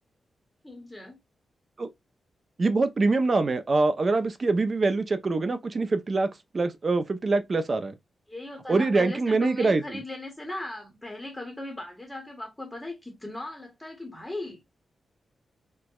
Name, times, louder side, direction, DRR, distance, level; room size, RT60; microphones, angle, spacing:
voice 1, 0.6-1.2 8.3-14.6, left 1 dB, 10° left, 0.8 m, -38 dB
voice 2, 2.6-6.3 6.5-7.9 8.7-9.8, right 3 dB, 35° right, 0.4 m, -24 dB
4.3 x 2.1 x 2.3 m
wide cardioid pair, 155°, 0 cm